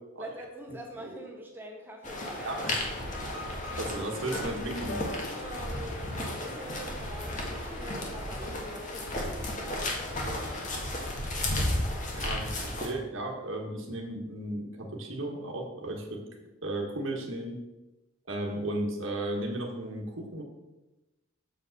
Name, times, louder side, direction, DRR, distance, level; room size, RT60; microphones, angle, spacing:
voice 1, 0.2-2.5 5.4-10.7, equal, 10° right, 0 dB, 1.3 m, -44 dB
sound 1, 2.0-12.9, left 1 dB, 35° left, 1.5 m, -34 dB
voice 2, 2.4-2.8 3.8-5.0 12.1-16.2 16.6-17.6 18.3-20.4, right 1 dB, 60° right, 0 dB, 1.5 m, -34 dB
sound 2, 3.1-6.5, left 2 dB, 55° left, 1.3 m, -44 dB
7.1 x 4.9 x 6.5 m, 1.0 s
head